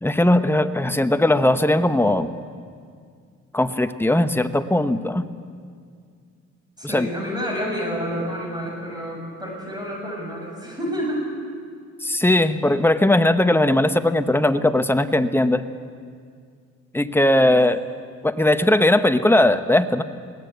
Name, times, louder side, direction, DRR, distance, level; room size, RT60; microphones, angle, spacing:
voice 1, 0.0-2.3 3.5-5.3 6.9-7.1 12.0-15.6 16.9-17.8 18.2-20.0, left 1 dB, 5° left, 10 dB, 1.0 m, -19 dB
voice 2, 6.8-11.3, equal, 15° right, -2 dB, 7.1 m, -29 dB
22.0 x 18.0 x 8.1 m, 2.1 s
cardioid pair, 90°, 30 cm